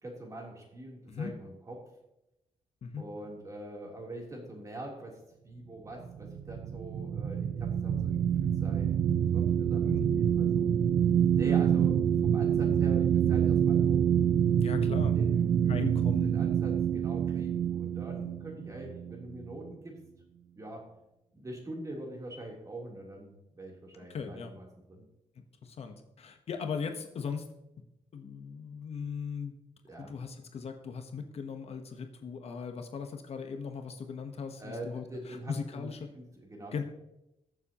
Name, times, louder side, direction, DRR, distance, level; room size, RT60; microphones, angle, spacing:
voice 1, 0.0-1.8 3.0-8.9 9.3-10.7 11.3-14.0 15.1-20.0 20.5-20.8 21.3-25.0 29.8-30.1 34.6-35.9 36.1-36.8, right 1 dB, 25° right, -1 dB, 3.3 m, -44 dB
sound 1, 6.0-19.7, right 9 dB, 65° right, 0.6 m, -27 dB
voice 2, 14.6-15.2 15.7-16.5 24.1-24.5 25.6-27.5 28.1-29.5 30.0-36.1 36.7-36.8, left 6 dB, 55° left, 6 dB, 1.1 m, -38 dB
21.5 x 7.2 x 3.0 m, 0.88 s
wide cardioid pair, 135°, 12 cm